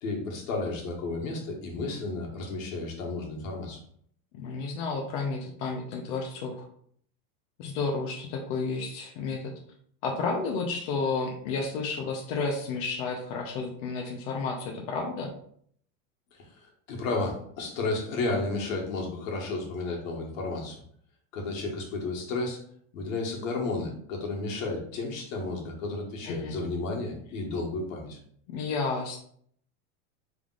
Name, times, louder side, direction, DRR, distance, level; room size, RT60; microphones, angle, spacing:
voice 1, 0.0-3.8 16.3-16.5 16.9-20.8 21.3-22.6 22.9-28.2, left 3 dB, 75° left, 0 dB, 1.5 m, -32 dB
voice 2, 4.3-6.6 7.6-9.5 10.0-15.3 26.2-26.6 28.5-29.2, left 4 dB, 45° left, 1 dB, 0.7 m, -31 dB
5.5 x 3.4 x 2.4 m, 0.63 s
supercardioid pair, 165°, 40 cm